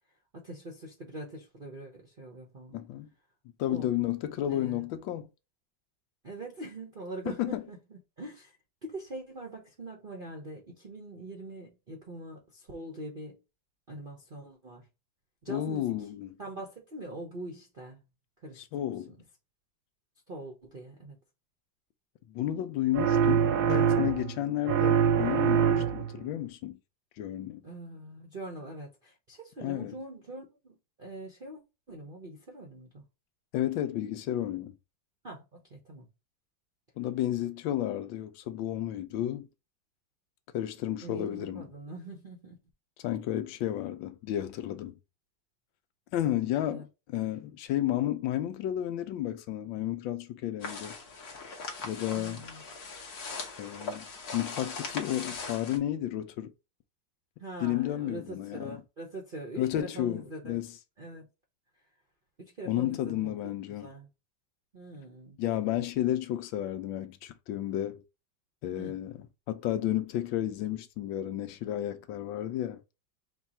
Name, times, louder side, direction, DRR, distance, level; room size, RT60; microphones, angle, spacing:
voice 1, 0.3-2.8 3.6-3.9 4.5-4.8 6.2-8.5 8.8-13.4 13.9-14.8 15.4-15.9 16.4-18.0 18.4-19.2 20.3-21.2 27.6-31.6 31.9-33.0 35.2-36.1 41.0-42.6 46.7-46.8 52.1-52.6 57.4-60.6 61.0-61.3 62.4-64.1 64.7-65.4 68.8-69.0, right 1 dB, 35° right, 0.9 m, -43 dB
voice 2, 2.7-3.1 3.6-5.3 7.3-7.6 15.5-16.4 18.6-19.1 22.3-26.8 27.2-27.6 29.6-29.9 33.5-34.7 37.0-39.5 40.5-41.7 43.0-44.9 46.1-51.0 51.8-52.4 53.6-54.0 54.3-56.5 57.6-58.8 59.6-60.7 62.7-63.9 65.4-68.0 68.6-69.2 69.5-72.8, left 12 dB, 80° left, 1.4 m, -32 dB
sound 1, 22.9-24.4 24.7-26.2, right 8 dB, 75° right, 1.2 m, -24 dB
sound 2, 50.6-55.8, left 4 dB, 55° left, 1.5 m, -40 dB
4.5 x 2.4 x 4.1 m
omnidirectional pair, 2.1 m